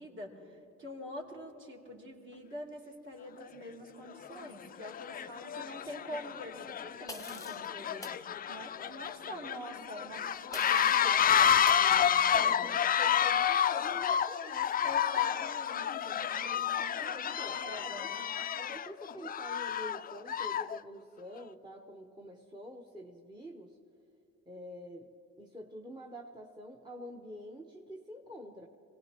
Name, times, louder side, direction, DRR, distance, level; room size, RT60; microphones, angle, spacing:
voice 1, 0.0-12.7 14.8-18.3, left 1 dB, 45° right, -2 dB, 3.0 m, -46 dB
sound 1, 3.4-3.5 4.2-4.5 4.8-20.8, left 9 dB, 30° left, 0.4 m, -30 dB
sound 2, 7.1-7.7 8.0-8.2 10.5-11.1 11.7-11.9, left 2 dB, 10° left, 1.0 m, -45 dB
voice 2, 12.0-14.9 17.0-18.1 18.6-23.8 24.5-25.1 25.4-28.7, equal, 15° right, 1 dB, 1.1 m, -47 dB
24.5 x 18.0 x 3.0 m, 2.5 s
supercardioid pair, 80°, 29 cm